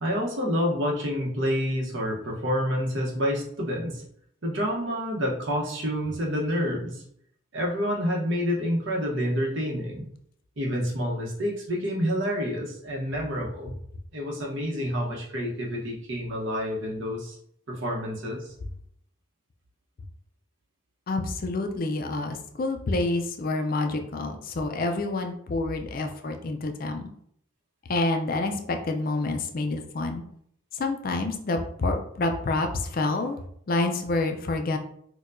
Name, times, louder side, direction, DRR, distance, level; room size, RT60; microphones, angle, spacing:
voice 1, 0.0-4.0 4.4-7.0 7.5-10.0 10.6-13.7 14.1-17.4 17.7-18.5, equal, 65° right, -2 dB, 0.9 m, -28 dB
voice 2, 21.1-27.1 27.9-30.2 30.7-34.8, left 2 dB, 45° left, 4 dB, 0.4 m, -28 dB
4.4 x 2.2 x 2.5 m, 0.67 s
head